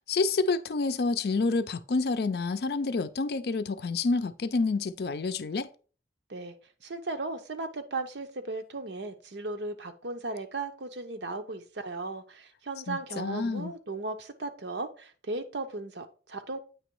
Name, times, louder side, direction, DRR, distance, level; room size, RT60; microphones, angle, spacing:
voice 1, 0.1-5.7 12.9-13.7, left 3 dB, 60° left, 0.4 m, -28 dB
voice 2, 6.8-16.6, right 3 dB, 80° right, 0.8 m, -36 dB
8.9 x 3.0 x 4.6 m
head